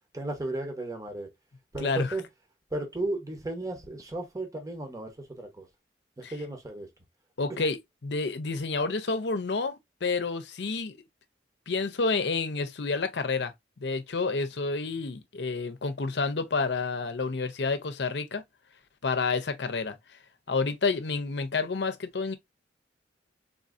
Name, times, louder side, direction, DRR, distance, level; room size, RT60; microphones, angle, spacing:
voice 1, 0.1-1.3 1.7-2.3 2.7-5.7 6.2-6.9 7.6-7.7, right 2 dB, 20° right, 0.8 m, -34 dB
voice 2, 7.4-7.8 8.0-11.0 11.7-13.5 13.8-18.4 19.0-20.0 20.5-22.4, left 4 dB, 65° left, 0.6 m, -29 dB
3.7 x 2.7 x 2.4 m
head